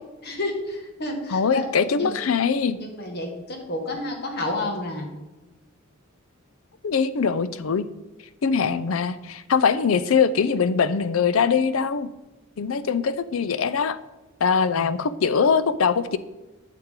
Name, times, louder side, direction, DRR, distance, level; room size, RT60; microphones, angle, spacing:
voice 1, 0.2-1.6 2.0-2.2 2.8-5.1 14.8-14.9, left 2 dB, 55° left, 3 dB, 1.7 m, -30 dB
voice 2, 1.3-2.8 6.8-7.8 8.4-12.1 12.6-14.0 14.4-16.2, left 6 dB, 80° left, 14 dB, 0.5 m, -22 dB
8.8 x 7.6 x 3.7 m, 1.1 s
head